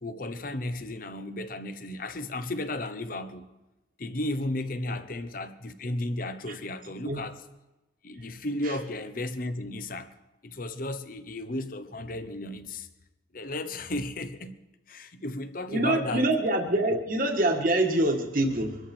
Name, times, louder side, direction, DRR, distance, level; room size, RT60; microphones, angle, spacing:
voice 1, 0.0-3.5 4.0-7.4 8.0-10.1 10.4-12.9 13.3-14.6 14.9-16.3 16.9-17.0, left 1 dB, 50° left, 1.0 m, -34 dB
voice 2, 15.7-18.8, right 1 dB, 50° right, 1.8 m, -25 dB
23.5 x 13.0 x 4.4 m
head